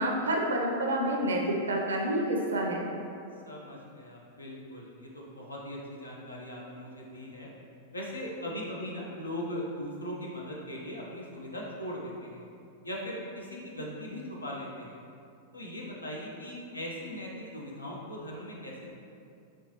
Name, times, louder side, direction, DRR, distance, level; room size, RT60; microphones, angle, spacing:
voice 1, 0.0-2.9, right 1 dB, 70° right, 0 dB, 0.5 m, -28 dB
voice 2, 3.4-7.5 7.9-12.4 12.8-15.0 15.5-18.9, equal, 85° left, -3 dB, 0.6 m, -39 dB
4.4 x 3.0 x 2.9 m, 2.5 s
figure-of-eight pair, 95°, 0 cm